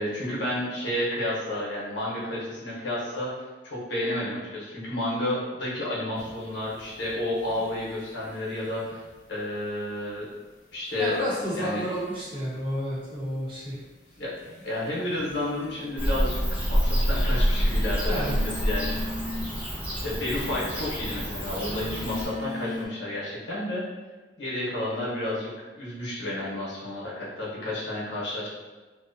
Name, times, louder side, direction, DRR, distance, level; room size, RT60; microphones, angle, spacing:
voice 1, 0.0-3.3 3.6-10.3 10.7-11.1 11.5-11.8 14.2-14.3 14.6-18.2 18.6-19.1 20.0-23.8 24.4-28.5, left 1 dB, 80° left, -6 dB, 0.8 m, -31 dB
sound 1, 6.2-9.3 9.5-10.3 10.8-22.9, left 2 dB, 45° left, 0.4 m, -42 dB
voice 2, 11.0-13.8 18.0-18.4, equal, 30° right, -9 dB, 0.8 m, -30 dB
Bird / Cricket, 16.0-22.2, equal, 5° right, 0.5 m, -27 dB
2.6 x 2.1 x 2.5 m, 1.3 s
head